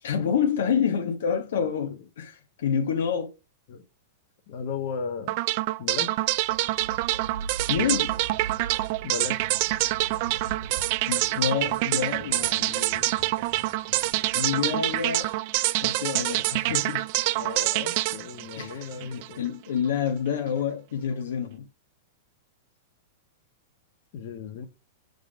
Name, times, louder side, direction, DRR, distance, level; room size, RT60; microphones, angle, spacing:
voice 1, 0.0-3.3 7.7-8.2 11.1-13.1 14.3-15.3 15.8-17.0 18.5-21.6, left 7 dB, 80° left, 1.0 m, -28 dB
voice 2, 4.5-5.4 5.8-6.1 9.0-9.4 17.3-19.5 24.1-24.7, left 6 dB, 55° left, 1.3 m, -35 dB
sound 1, 5.3-19.4, right 18 dB, 50° right, 0.3 m, -26 dB
sound 2, 6.3-15.1, right 6 dB, 90° right, 1.2 m, -41 dB
5.1 x 4.0 x 5.1 m
supercardioid pair, 145°, 0 cm